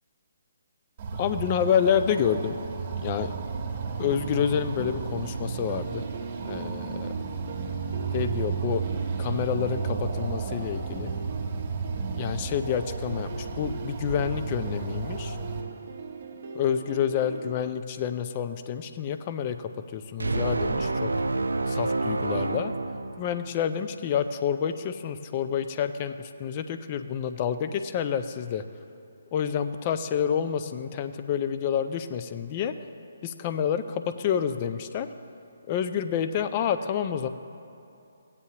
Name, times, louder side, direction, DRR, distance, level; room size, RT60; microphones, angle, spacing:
sound 1, 1.0-15.6, right 5 dB, 35° right, 1.3 m, -33 dB
voice 1, 1.2-2.6 3.0-3.3 4.0-6.0 6.4-7.1 8.1-8.8 9.2-11.1 12.2-15.4 16.5-19.6 19.9-21.1 21.7-22.7 23.2-26.1 26.4-28.6 29.3-32.7 33.2-35.1 35.7-37.3, left 8 dB, 30° left, 9 dB, 0.5 m, -28 dB
sound 2, 3.4-17.6, right 5 dB, 50° right, 0.8 m, -42 dB
sound 3, 20.2-23.7, right 3 dB, 80° right, 0.4 m, -28 dB
17.0 x 8.3 x 2.9 m, 2.7 s
figure-of-eight pair, 145°, 0 cm